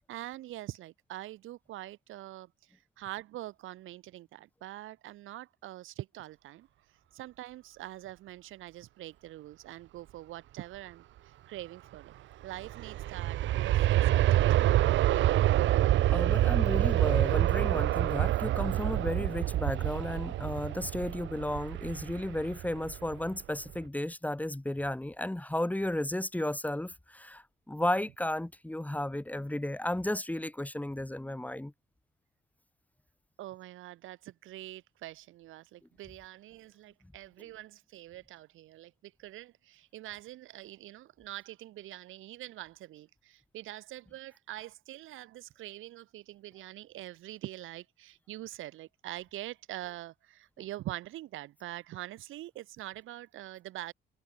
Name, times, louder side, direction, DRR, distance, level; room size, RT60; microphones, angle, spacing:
voice 1, 0.0-6.7 7.1-12.1 12.4-14.9 33.4-53.9, right 15 dB, 85° right, 2.2 m, -44 dB
Aircraft, 12.4-23.3 23.7-23.8, right 14 dB, 70° right, 0.6 m, -27 dB
voice 2, 15.4-31.7, left 1 dB, 10° left, 2.8 m, -34 dB
cardioid pair, 90°, 20 cm